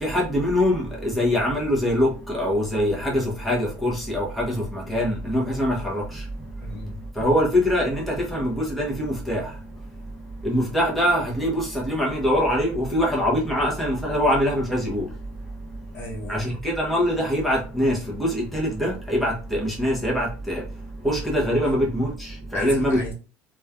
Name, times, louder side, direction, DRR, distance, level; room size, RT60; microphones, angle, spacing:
voice 1, 0.0-6.2 7.2-9.5 10.4-15.1 16.3-20.6 21.0-23.1, equal, ahead, 0.7 m, -23 dB
voice 2, 6.6-7.1 15.9-16.4 22.5-23.1, left 1 dB, 40° left, 0.9 m, -35 dB
3.1 x 2.3 x 2.3 m
cardioid pair, 150°, 6 cm